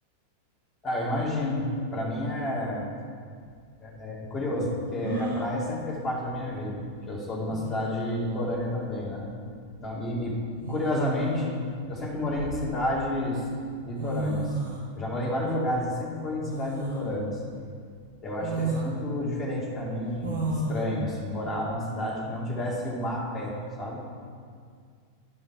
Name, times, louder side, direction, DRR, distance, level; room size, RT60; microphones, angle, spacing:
voice 1, 0.8-1.7 1.9-2.8 3.8-6.8 7.1-9.3 9.8-10.4 10.7-11.6 11.9-13.5 13.8-14.6 15.0-17.4 18.2-24.0, left 1 dB, 20° left, -5 dB, 2.3 m, -30 dB
sound 1, 3.4-3.5 5.0-5.5 7.0-7.1 7.5-8.0 9.3-9.5 10.6-11.4 12.0-13.0 13.7-13.8 14.0-14.9 16.5-17.1 17.6-17.7 18.4-18.9 20.2-20.8, right 2 dB, 65° right, 1.3 m, -32 dB
11.0 x 5.4 x 4.7 m, 2.1 s
figure-of-eight pair, 90°, 0 cm